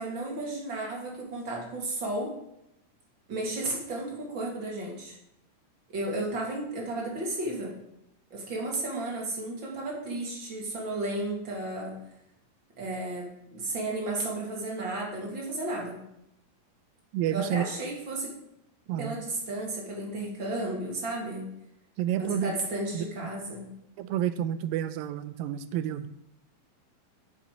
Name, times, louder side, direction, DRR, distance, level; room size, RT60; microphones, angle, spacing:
voice 1, 0.0-2.3 3.3-5.2 5.9-7.7 8.3-11.9 12.8-16.0 17.3-18.3 19.0-21.5 22.2-23.7, right 2 dB, 35° right, -2 dB, 2.6 m, -33 dB
voice 2, 17.1-17.7 18.9-19.2 22.0-22.5 22.9-23.1 24.0-26.1, right 11 dB, 85° right, 12 dB, 2.3 m, -29 dB
8.5 x 8.4 x 5.1 m, 0.81 s
omnidirectional pair, 4.0 m